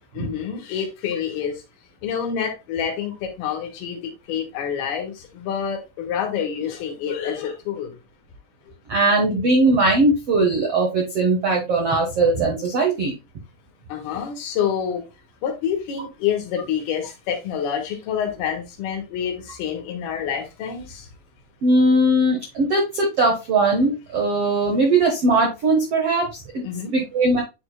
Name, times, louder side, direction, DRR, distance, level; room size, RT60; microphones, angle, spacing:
voice 1, 0.1-1.6 2.0-7.9 13.9-15.0 15.4-21.1 26.6-26.9, left 8 dB, 70° left, 3.0 m, -27 dB
voice 2, 8.9-13.1 21.6-26.6 26.9-27.4, right 2 dB, 85° right, 1.3 m, -19 dB
9.9 x 4.3 x 2.2 m
omnidirectional pair, 5.0 m